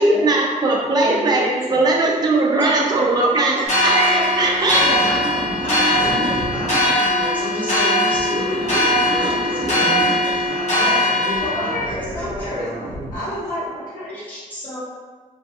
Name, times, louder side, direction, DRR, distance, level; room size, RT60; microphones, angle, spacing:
voice 1, 0.0-1.4 1.7-4.8, right 2 dB, 30° right, -2 dB, 0.4 m, -19 dB
voice 2, 1.0-2.0 2.3-2.4 3.0-3.1 6.0-6.8 9.8-10.1 10.8-11.0 11.4-12.7 13.1-14.2, left 1 dB, 90° left, -9 dB, 0.9 m, -29 dB
sound 1, 3.7-11.9, left 1 dB, 60° left, 0.9 m, -20 dB
voice 3, 3.7-5.2 5.6-12.5 14.1-14.8, left 1 dB, 10° left, -9 dB, 0.9 m, -31 dB
sound 2, 4.7-7.1 8.1-10.3 11.3-13.2, right 1 dB, 80° right, 0.6 m, -31 dB
3.1 x 2.2 x 2.8 m, 1.4 s
wide cardioid pair, 180°, 14 cm